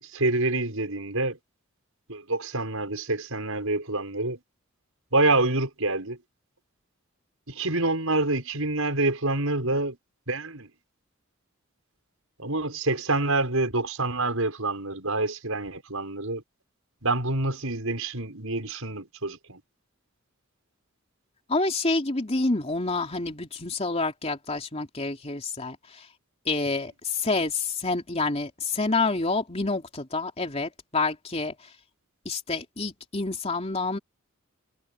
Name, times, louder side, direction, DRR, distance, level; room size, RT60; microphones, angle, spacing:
voice 1, 0.0-1.4 2.1-4.4 5.1-6.2 7.5-10.0 10.3-10.7 12.4-16.4 17.0-19.6, right 2 dB, 90° right, 6.3 m, -27 dB
voice 2, 21.5-25.8 26.5-31.5 32.2-34.0, left 3 dB, 30° left, 3.2 m, -28 dB
head